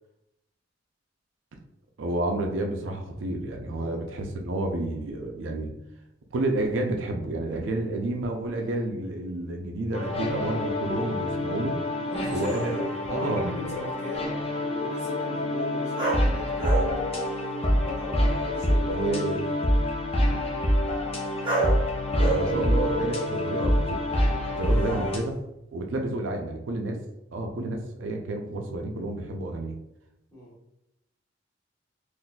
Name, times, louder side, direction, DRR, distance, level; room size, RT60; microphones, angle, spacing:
voice 1, 2.0-5.7 6.3-11.8 12.3-12.8 13.1-13.5 18.9-19.5 22.2-24.1 24.4-25.3 25.7-27.0 27.3-29.8, right 2 dB, 75° right, 2 dB, 0.5 m, -30 dB
sound 1, 9.9-25.2, left 1 dB, 30° left, 0.5 m, -26 dB
voice 2, 12.0-17.0 17.8-19.0 24.7-25.1 30.3-30.5, left 2 dB, 15° left, -6 dB, 1.0 m, -37 dB
sound 2, 12.2-13.3 16.0-17.8 18.1-18.8 21.4-21.9 22.2-24.4 24.8-25.3, right 3 dB, 25° right, 0.8 m, -32 dB
3.9 x 2.5 x 2.2 m, 0.86 s
head